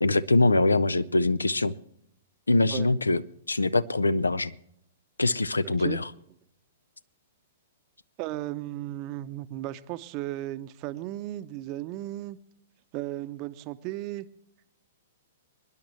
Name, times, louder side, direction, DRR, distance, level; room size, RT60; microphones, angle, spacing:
voice 1, 0.0-1.7 2.5-3.2 3.5-4.5 5.2-6.1, left 2 dB, 85° left, 18 dB, 0.5 m, -23 dB
voice 2, 5.6-6.0 8.2-12.4 12.9-14.3, right 15 dB, 35° right, 12 dB, 0.7 m, -35 dB
25.0 x 10.5 x 3.2 m, 0.73 s
figure-of-eight pair, 110°, 0 cm